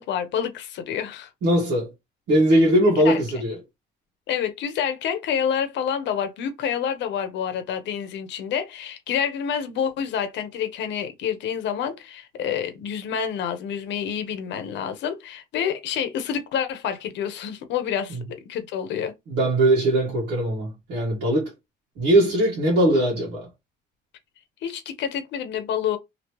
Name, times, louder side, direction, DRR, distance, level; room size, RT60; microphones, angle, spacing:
voice 1, 0.0-1.3 2.5-2.6 3.0-3.2 4.3-19.1 24.6-26.0, left 8 dB, 85° left, 0.8 m, -28 dB
voice 2, 1.4-1.9 2.3-3.6 18.1-18.2 19.3-21.5 22.0-23.5, right 1 dB, 80° right, 1.2 m, -20 dB
3.0 x 2.8 x 2.9 m
cardioid pair, 160°, 18 cm